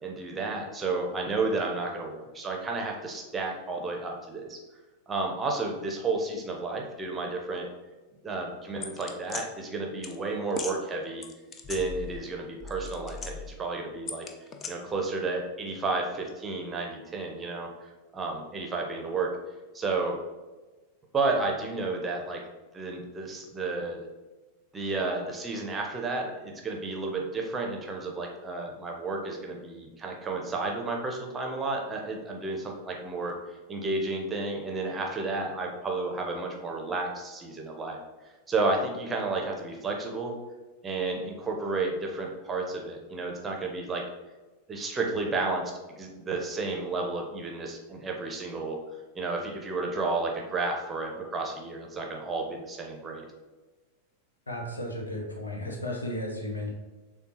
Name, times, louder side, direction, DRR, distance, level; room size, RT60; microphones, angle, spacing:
voice 1, 0.0-4.6 5.1-7.7 8.2-11.2 11.7-14.3 14.7-19.3 19.7-20.2 21.1-22.4 22.7-24.0 24.7-33.3 33.7-38.0 38.5-40.4 40.8-44.0 44.7-48.8 49.1-53.3, right 3 dB, 15° right, 1 dB, 0.8 m, -32 dB
sound 1, 8.8-9.4 10.0-10.2 10.5-10.8 11.2-12.3 12.6-13.6 14.1-14.7, left 5 dB, 25° left, 0.4 m, -38 dB
voice 2, 54.5-56.7, left 1 dB, 75° left, 1 dB, 0.8 m, -34 dB
6.6 x 2.3 x 2.9 m, 1.2 s
figure-of-eight pair, 90°, 0 cm